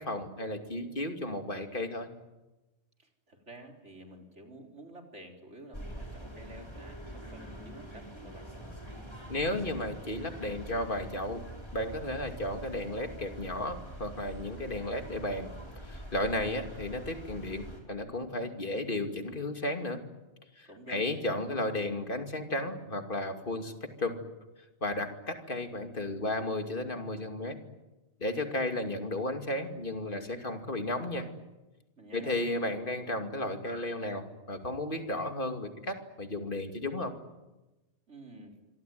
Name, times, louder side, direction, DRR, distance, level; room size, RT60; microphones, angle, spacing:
voice 1, 0.0-2.1 9.3-11.4 11.7-15.5 15.8-20.0 20.6-23.7 24.0-24.2 24.8-27.6 28.2-31.3 32.1-37.1, left 1 dB, 50° left, 5 dB, 2.7 m, -34 dB
voice 2, 3.0-8.5 20.6-21.1 32.0-32.4 38.1-38.6, right 1 dB, 80° right, 2 dB, 4.6 m, -50 dB
sound 1, 5.7-17.8, equal, 25° left, 5.3 m, -45 dB
26.5 x 24.0 x 9.4 m, 1.1 s
omnidirectional pair, 1.2 m